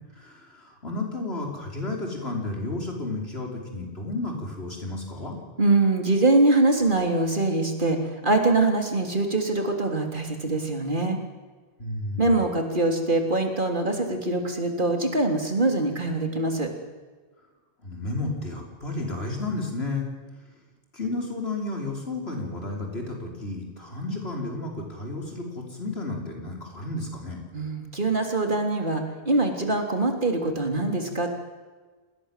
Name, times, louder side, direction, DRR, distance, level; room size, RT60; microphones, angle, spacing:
voice 1, 0.2-5.4 11.8-12.3 17.8-20.1 20.9-27.4, left 2 dB, 85° left, 1 dB, 5.7 m, -32 dB
voice 2, 5.6-11.2 12.2-16.7 27.5-31.4, right 2 dB, 55° right, 4 dB, 3.7 m, -23 dB
28.0 x 20.0 x 7.6 m, 1.4 s
omnidirectional pair, 1.0 m